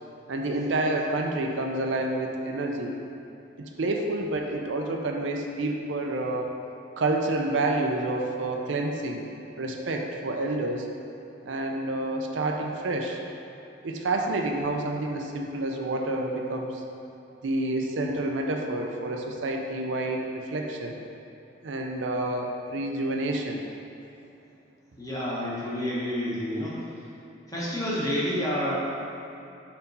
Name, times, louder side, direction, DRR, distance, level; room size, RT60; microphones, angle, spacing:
voice 1, 0.3-3.0 3.8-6.5 7.0-9.2 9.6-10.9 11.5-13.2 13.8-16.7 17.4-21.0 21.6-23.6, right 2 dB, 80° right, 2 dB, 0.5 m, -28 dB
voice 2, 25.0-26.8 27.5-28.8, equal, 20° left, -7 dB, 1.1 m, -29 dB
4.4 x 4.1 x 5.4 m, 2.8 s
head